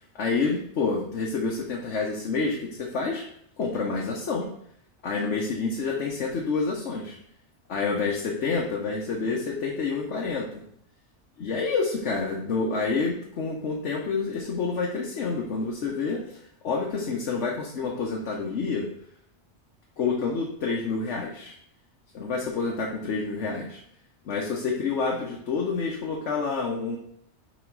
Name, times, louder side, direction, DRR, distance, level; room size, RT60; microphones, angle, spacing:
voice 1, 0.2-3.2 3.6-4.5 5.0-7.2 7.7-10.5 11.4-18.9 20.0-21.5 22.1-23.8 24.2-27.0, left 4 dB, 90° left, -2 dB, 1.2 m, -28 dB
6.1 x 4.2 x 4.6 m, 0.70 s
omnidirectional pair, 1.2 m